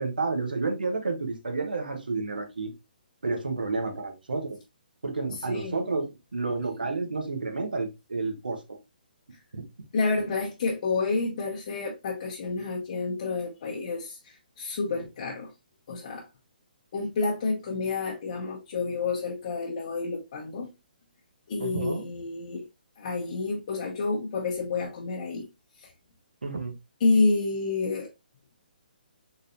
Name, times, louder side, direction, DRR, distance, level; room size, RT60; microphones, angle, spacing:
voice 1, 0.0-2.7 3.2-4.6 5.0-8.8 9.5-9.6 21.6-22.1 26.4-26.7, right 3 dB, 65° right, 1.1 m, -30 dB
voice 2, 9.9-15.5 15.9-16.3 16.9-20.7 21.5-22.6 23.0-25.4 25.8-25.9 27.0-28.1, left 3 dB, 40° left, 1.0 m, -29 dB
4.0 x 3.8 x 2.6 m
figure-of-eight pair, 135°, 5 cm